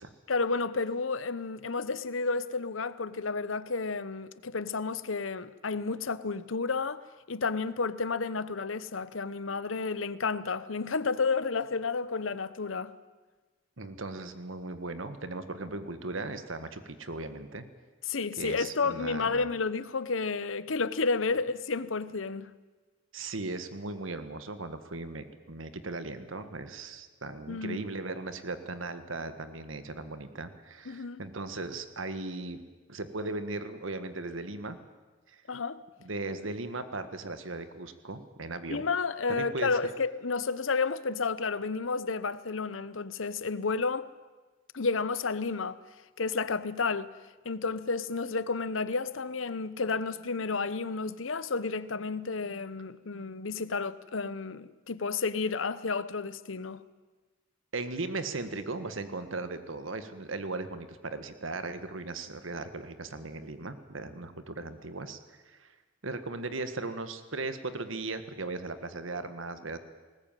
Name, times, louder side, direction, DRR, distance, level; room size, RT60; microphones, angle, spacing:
voice 1, 0.3-7.0 7.3-12.9 18.1-22.5 27.5-27.9 30.9-31.2 35.5-35.8 38.7-44.1 44.7-45.8 46.2-47.1 47.4-56.8, left 4 dB, 80° left, 0.9 m, -31 dB
voice 2, 13.8-17.6 18.4-19.5 23.1-32.6 32.9-34.8 35.3-35.4 36.0-38.8 39.3-39.7 57.7-65.2 65.4-65.7 66.0-69.8, right 3 dB, 80° right, 1.6 m, -37 dB
20.0 x 19.5 x 9.1 m
head